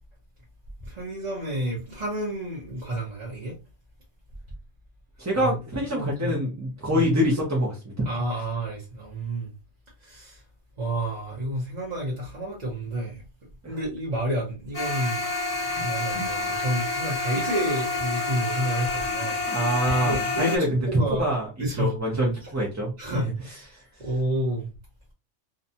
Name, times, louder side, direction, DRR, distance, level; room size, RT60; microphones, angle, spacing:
voice 1, 0.8-3.5 5.3-6.4 6.9-7.1 8.0-9.5 10.0-10.4 10.8-13.2 13.7-15.2 15.8-19.4 20.0-20.6 20.9-21.2 21.6-21.9 23.0-23.3 24.0-24.7, right 1 dB, 40° right, 0.9 m, -30 dB
voice 2, 5.2-7.9 13.6-13.8 19.5-21.5 21.7-23.3, equal, 20° right, 0.4 m, -25 dB
sound 1, 14.7-20.6, left 3 dB, 35° left, 1.0 m, -28 dB
2.6 x 2.2 x 2.6 m
omnidirectional pair, 1.2 m